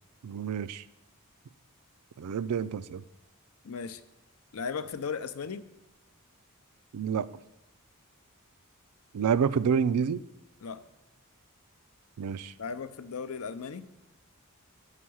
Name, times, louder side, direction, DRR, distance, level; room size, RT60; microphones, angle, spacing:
voice 1, 0.2-0.8 2.2-3.0 6.9-7.3 9.1-10.2 12.2-12.5, right 7 dB, 90° right, 15 dB, 0.4 m, -28 dB
voice 2, 3.6-4.0 4.5-5.7 10.6-10.9 12.6-13.9, left 5 dB, 70° left, 13 dB, 0.5 m, -36 dB
8.0 x 5.7 x 6.2 m, 1.0 s
head